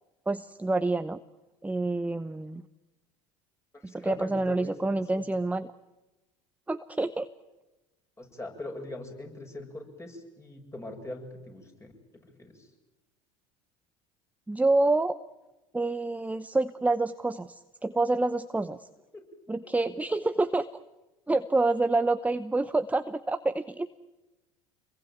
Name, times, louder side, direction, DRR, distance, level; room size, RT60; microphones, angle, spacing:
voice 1, 0.3-1.2 1.6-2.6 3.8-5.7 6.7-7.3 14.5-15.2 15.7-18.9 19.5-20.7 21.3-23.9, right 2 dB, 10° right, 12 dB, 0.9 m, -27 dB
voice 2, 3.7-5.2 8.2-11.9 12.2-12.7 19.1-19.2 19.6-19.7 20.0-20.1, left 1 dB, 15° left, 2 dB, 7.7 m, -42 dB
27.5 x 22.0 x 9.2 m, 1.1 s
hypercardioid pair, 75°, 17 cm